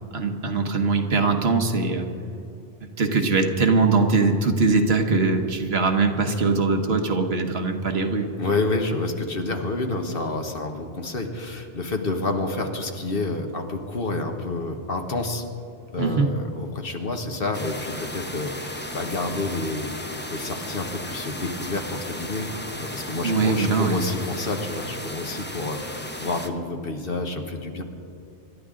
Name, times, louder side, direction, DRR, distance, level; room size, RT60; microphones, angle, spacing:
voice 1, 0.1-2.1 2.8-8.3 16.0-16.3 23.2-24.0, right 3 dB, 60° right, 4 dB, 1.4 m, -21 dB
voice 2, 8.4-15.4 15.9-27.8, left 2 dB, 55° left, 4 dB, 1.4 m, -29 dB
sound 1, 17.5-26.5, left 1 dB, 10° left, 0.8 m, -35 dB
26.0 x 12.0 x 3.8 m, 2.5 s
omnidirectional pair, 1.2 m